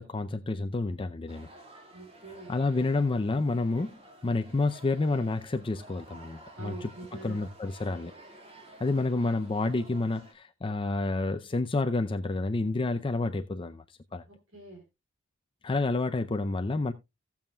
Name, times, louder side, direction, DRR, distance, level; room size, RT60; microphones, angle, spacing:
voice 1, 0.0-1.5 2.5-6.9 7.2-8.1 8.8-13.8 14.1-14.2 15.6-16.9, left 3 dB, 25° left, 0.5 m, -29 dB
sound 1, 1.3-10.3, right 1 dB, 30° right, 2.1 m, -52 dB
voice 2, 1.9-2.5 6.6-7.4 14.3-14.8, right 2 dB, 70° right, 3.9 m, -45 dB
17.5 x 7.2 x 2.3 m
head